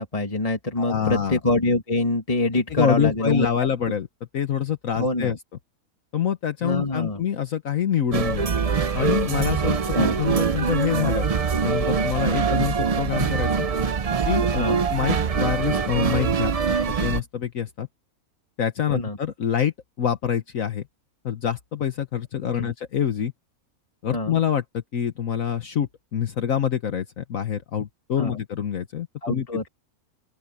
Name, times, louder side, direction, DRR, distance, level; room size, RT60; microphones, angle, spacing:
voice 1, 0.0-3.7 5.0-5.4 6.6-7.2 9.9-10.2 14.6-14.8 18.9-19.2 22.5-22.7 24.1-24.4 28.2-28.4 29.2-29.7, left 2 dB, 25° left, 2.2 m, -25 dB
voice 2, 0.8-1.4 2.7-4.1 4.3-5.4 6.1-8.5 8.9-9.8 10.2-11.3 11.6-13.7 14.3-16.6 17.0-17.9 18.6-20.8 21.2-23.3 24.0-29.7, left 9 dB, 65° left, 1.5 m, -26 dB
sound 1, 8.1-17.2, right 6 dB, 55° right, 0.4 m, -23 dB
open air
omnidirectional pair, 1.6 m